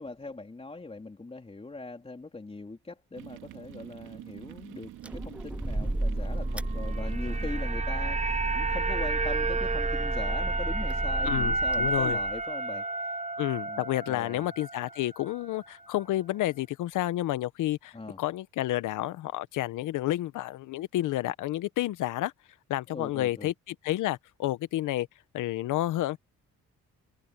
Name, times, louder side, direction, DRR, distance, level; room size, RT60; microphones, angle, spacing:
voice 1, 0.0-13.2 13.5-14.5 17.9-18.2 22.9-23.5, left 3 dB, 20° left, 3.6 m, -41 dB
sound 1, 3.1-8.2, right 14 dB, 90° right, 2.6 m, -46 dB
sound 2, 5.0-12.4, right 1 dB, 5° right, 0.3 m, -32 dB
sound 3, 6.7-15.0 15.3-15.4, right 3 dB, 25° right, 0.9 m, -31 dB
voice 2, 11.2-12.2 13.4-22.3 22.7-25.1 25.3-26.2, left 15 dB, 85° left, 1.1 m, -30 dB
cardioid pair, 90°, 30 cm